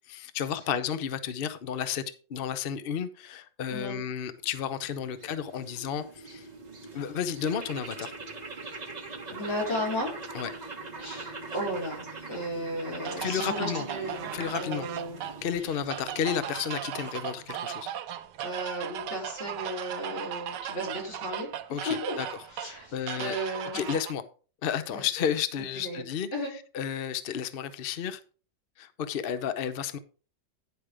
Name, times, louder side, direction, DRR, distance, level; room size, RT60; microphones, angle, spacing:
voice 1, 0.1-2.0 2.3-6.5 6.9-8.1 10.3-10.5 13.2-13.9 14.3-14.9 15.4-17.9 21.7-22.3 22.6-23.3 23.7-24.2 24.6-26.3 26.7-28.2 28.8-30.0, left 8 dB, 50° left, 0.6 m, -32 dB
voice 2, 3.7-4.0 9.3-10.1 11.0-15.2 15.6-15.8 18.4-22.2 22.5-24.0 24.9-25.0 25.8-26.0 26.3-26.5, equal, 90° left, 5.3 m, -35 dB
sound 1, 4.4-17.8, right 3 dB, 25° right, 1.4 m, -42 dB
sound 2, 13.0-24.1, right 10 dB, 75° right, 1.3 m, -37 dB
11.0 x 5.1 x 4.9 m
omnidirectional pair, 2.0 m